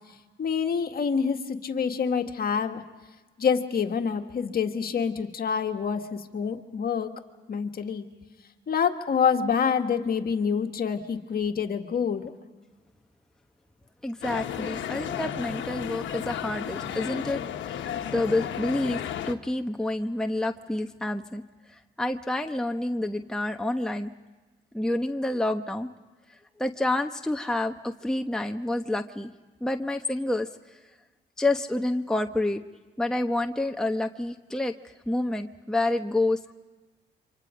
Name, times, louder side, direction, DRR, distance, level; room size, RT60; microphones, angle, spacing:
voice 1, 0.4-2.8 3.4-7.1 7.5-8.1 8.7-12.3, left 6 dB, 50° left, 5 dB, 1.8 m, -27 dB
voice 2, 14.0-21.4 21.7-24.1 24.7-25.9 26.6-29.3 29.6-30.8 31.4-32.6 33.0-36.5, left 2 dB, 5° left, 4 dB, 1.0 m, -28 dB
sound 1, 14.2-19.3, left 9 dB, 70° left, 1.3 m, -33 dB
28.5 x 25.5 x 5.1 m, 1.2 s
cardioid pair, 90°, 20 cm